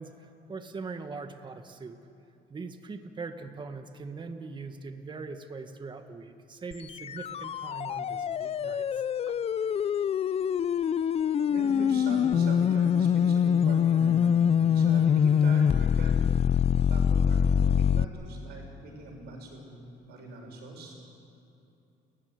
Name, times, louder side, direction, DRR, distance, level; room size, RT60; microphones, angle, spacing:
voice 1, 0.0-2.0 2.5-8.9 9.3-9.4, right 4 dB, 25° right, 7 dB, 1.6 m, -41 dB
sound 1, 6.7-18.0, left 8 dB, 35° left, 0.5 m, -24 dB
voice 2, 11.5-16.4 16.9-19.8 20.0-20.9, right 1 dB, 75° right, 2 dB, 6.5 m, -42 dB
29.5 x 14.5 x 9.6 m, 2.8 s
cardioid pair, 110°, 17 cm